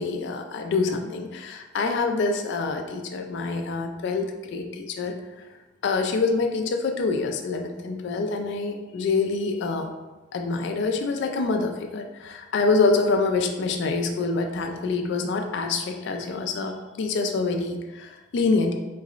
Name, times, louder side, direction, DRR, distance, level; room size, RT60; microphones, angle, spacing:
voice 1, 0.0-5.1 5.8-9.9 10.3-18.7, left 3 dB, 55° left, 4 dB, 0.3 m, -26 dB
3.9 x 2.9 x 2.4 m, 1.2 s
head